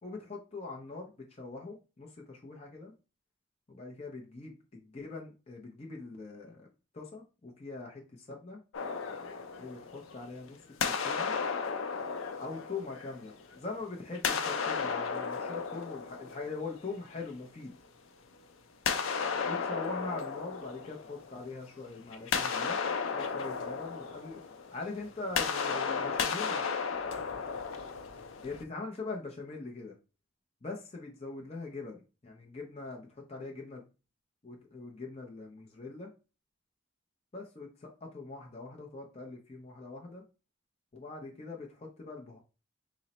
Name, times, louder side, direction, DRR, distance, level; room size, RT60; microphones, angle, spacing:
voice 1, 0.0-2.9 3.7-6.7 6.9-8.6 9.6-11.3 12.4-17.7 19.5-22.8 23.1-24.4 24.7-26.6 28.4-29.9 30.6-33.8 34.4-36.1 37.3-40.2 40.9-42.4, left 3 dB, 30° left, 0 dB, 0.5 m, -42 dB
sound 1, 8.7-10.4 10.8-13.6 14.1-17.0 18.8-21.6 21.9-28.6, left 5 dB, 90° left, 0.5 m, -34 dB
3.8 x 2.0 x 4.1 m, 0.33 s
head